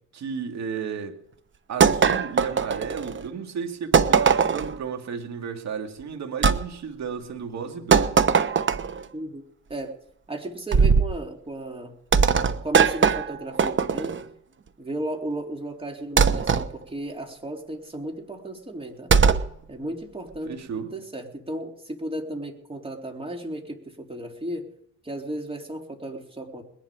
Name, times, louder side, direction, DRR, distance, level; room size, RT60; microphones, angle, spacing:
voice 1, 0.1-1.2 1.7-8.2 20.4-20.9, right 6 dB, 60° right, 2.5 m, -33 dB
sound 1, 1.8-3.2 3.9-4.8 6.4-6.6 7.9-9.0 10.7-11.1 12.1-14.2 16.2-16.7 19.1-19.5, right 6 dB, 40° right, 1.1 m, -20 dB
voice 2, 9.1-9.4 9.7-10.0 10.3-12.0 12.6-14.2 14.8-19.1 19.7-24.7 25.0-26.6, right 1 dB, 20° right, 3.6 m, -34 dB
21.5 x 11.0 x 5.0 m
cardioid pair, 90°, 30 cm